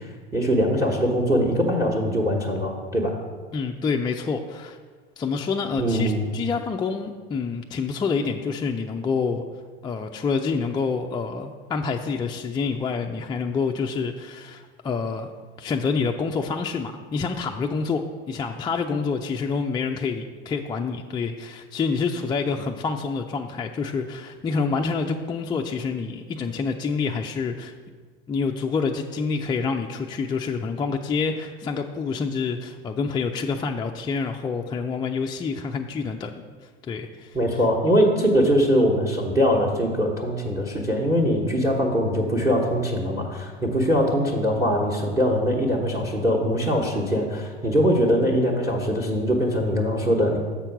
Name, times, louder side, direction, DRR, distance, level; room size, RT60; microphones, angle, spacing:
voice 1, 0.0-3.2 5.8-6.3 37.3-50.4, equal, 10° right, -2 dB, 1.2 m, -22 dB
voice 2, 3.5-4.8 5.2-9.4 9.8-15.3 15.6-27.7 28.3-36.3 36.9-37.4, left 5 dB, 15° left, 2 dB, 0.3 m, -27 dB
7.2 x 4.4 x 5.9 m, 1.5 s
hypercardioid pair, 90°, 31 cm